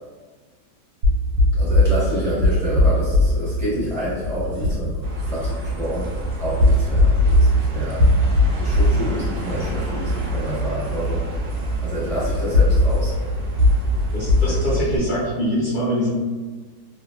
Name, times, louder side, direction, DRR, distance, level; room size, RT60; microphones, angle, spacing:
sound 1, 1.0-15.0, left 1 dB, 90° right, 1.3 m, -20 dB
voice 1, 1.6-6.1 6.4-8.1 8.6-11.3 11.8-13.2 14.5-14.6, equal, ahead, -11 dB, 0.7 m, -28 dB
sound 2, 4.6-6.0, left 1 dB, 75° left, 1.1 m, -30 dB
sound 3, 5.0-14.8, right 2 dB, 70° right, 0.9 m, -29 dB
voice 2, 14.1-16.1, equal, 55° left, -9 dB, 0.5 m, -23 dB
2.8 x 2.3 x 2.3 m, 1.4 s
omnidirectional pair, 1.9 m